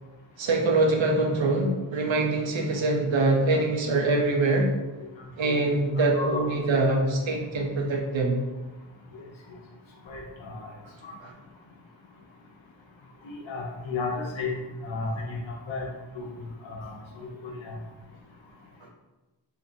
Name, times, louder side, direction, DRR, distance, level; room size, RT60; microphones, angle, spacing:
voice 1, 0.4-4.7 5.4-8.4 11.2-11.3, right 2 dB, 75° right, 0 dB, 0.7 m, -24 dB
voice 2, 6.0-6.8 9.1-9.2 10.1-10.7 11.0-11.1 13.2-15.4 15.7-15.9 16.1-16.3 16.6-17.8, left 3 dB, 75° left, 0 dB, 0.7 m, -34 dB
2.8 x 2.6 x 2.6 m, 1.1 s
cardioid pair, 40°, 47 cm